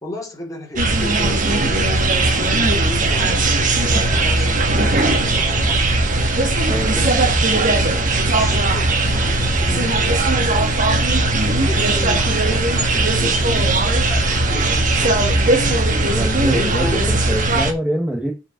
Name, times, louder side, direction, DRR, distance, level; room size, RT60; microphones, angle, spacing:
voice 1, 0.0-6.4 6.9-10.8 11.4-15.9 16.4-17.1, left 1 dB, 15° left, 3.4 m, -34 dB
sound 1, 0.8-17.7, right 2 dB, 40° right, 1.6 m, -18 dB
voice 2, 6.7-7.0 16.0-18.3, right 1 dB, 5° right, 1.3 m, -25 dB
8.4 x 5.1 x 5.1 m
head